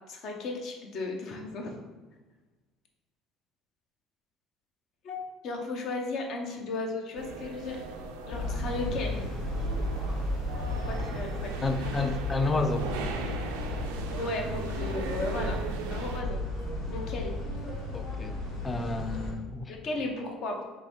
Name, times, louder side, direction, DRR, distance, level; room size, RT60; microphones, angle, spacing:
voice 1, 0.1-1.8 5.0-7.8 8.3-9.3 10.9-12.1 14.1-15.6 15.9-16.4 16.9-17.4 19.7-20.6, left 2 dB, 60° left, 2 dB, 0.6 m, -35 dB
sound 1, 7.1-16.2, right 4 dB, 80° right, 0.3 m, -39 dB
sound 2, 8.3-19.3, left 1 dB, 80° left, 1.4 m, -34 dB
voice 2, 11.6-12.9 17.9-18.4 18.6-19.7, left 3 dB, 25° left, 9 dB, 0.3 m, -30 dB
3.4 x 3.1 x 2.7 m, 1.2 s
hypercardioid pair, 65°, 0 cm